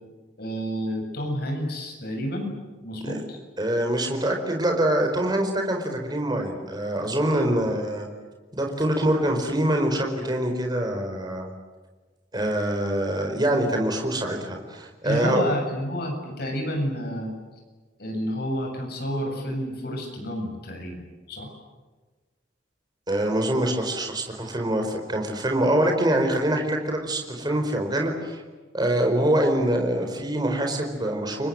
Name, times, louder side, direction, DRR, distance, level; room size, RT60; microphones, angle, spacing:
voice 1, 0.4-2.5 2.8-3.4 15.0-17.3 18.0-21.5, equal, 60° left, 2 dB, 7.6 m, -29 dB
voice 2, 3.6-8.1 8.5-11.5 12.3-15.4 23.1-28.4 28.7-31.5, right 1 dB, 20° right, 3 dB, 4.7 m, -24 dB
30.0 x 24.0 x 8.0 m, 1.3 s
head